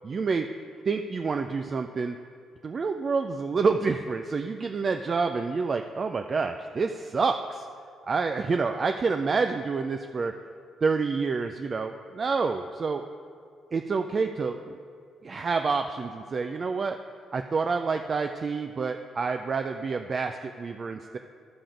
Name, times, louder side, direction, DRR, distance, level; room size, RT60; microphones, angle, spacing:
voice 1, 0.1-0.5 0.9-2.2 2.6-7.7 8.1-10.3 10.8-13.0 13.7-14.8 15.2-17.0 17.3-21.2, right 4 dB, 40° right, 6 dB, 0.4 m, -28 dB
11.5 x 5.9 x 5.1 m, 2.2 s
cardioid pair, 90°, 0 cm